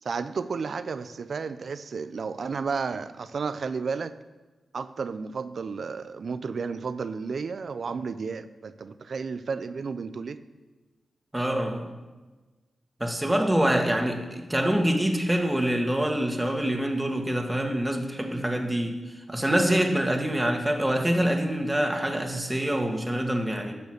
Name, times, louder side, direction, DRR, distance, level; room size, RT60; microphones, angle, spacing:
voice 1, 0.0-4.2 4.7-10.4, right 5 dB, 70° right, 13 dB, 0.5 m, -32 dB
voice 2, 11.3-12.0 13.0-23.7, right 1 dB, 15° right, 3 dB, 1.9 m, -25 dB
10.5 x 6.8 x 6.5 m, 1.2 s
cardioid pair, 45°, 0 cm